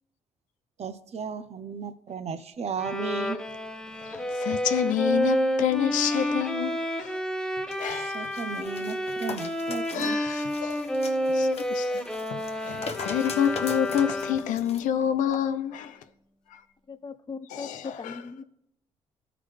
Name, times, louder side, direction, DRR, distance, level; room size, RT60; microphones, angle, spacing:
voice 1, 0.8-3.4 8.0-10.2, right 6 dB, 50° right, 0.8 m, -35 dB
Bowed string instrument, 2.8-14.6, equal, 5° left, 1.0 m, -29 dB
voice 2, 4.0-7.2 7.8-8.2 9.9-10.9 11.3-12.0 12.3-16.0 16.5-16.6 17.5-18.1, left 9 dB, 70° left, 0.7 m, -28 dB
sound 1, 7.7-14.8 15.3-15.4, left 4 dB, 50° left, 1.2 m, -41 dB
voice 3, 16.9-18.4, left 4 dB, 35° left, 0.7 m, -39 dB
14.0 x 4.8 x 3.3 m
hypercardioid pair, 50°, 14 cm